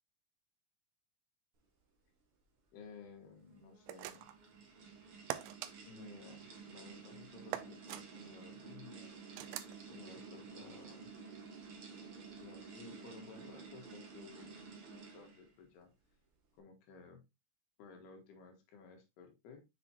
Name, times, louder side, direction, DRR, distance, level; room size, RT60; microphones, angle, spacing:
voice 1, 2.7-4.3 5.9-9.1 9.9-11.1 12.4-15.9 16.6-17.2 17.8-19.6, left 4 dB, 70° left, 4 dB, 3.4 m, -55 dB
sound 1, 3.4-15.5, right 5 dB, 70° right, 1.3 m, -52 dB
sound 2, 3.9-4.4 5.3-5.7 7.5-8.0 9.4-9.8, right 13 dB, 85° right, 2.1 m, -42 dB
7.1 x 6.1 x 2.8 m, 0.23 s
omnidirectional pair, 5.1 m